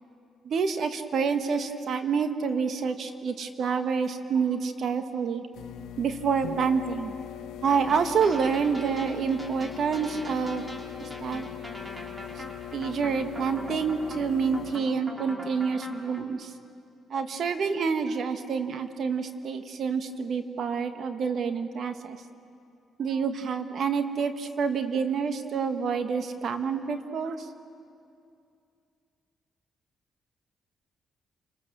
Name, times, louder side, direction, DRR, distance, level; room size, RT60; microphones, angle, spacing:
voice 1, 0.4-5.4 6.0-7.1 7.6-10.7 11.0-11.5 12.3-12.4 12.7-16.5 17.1-22.2 23.0-27.5, right 5 dB, 65° right, 7 dB, 1.6 m, -28 dB
sound 1, 5.5-14.8, left 11 dB, 85° left, 1.0 m, -41 dB
sound 2, 7.7-16.2, equal, 15° right, 3.6 m, -42 dB
29.0 x 20.0 x 7.0 m, 2.5 s
supercardioid pair, 65°, 0 cm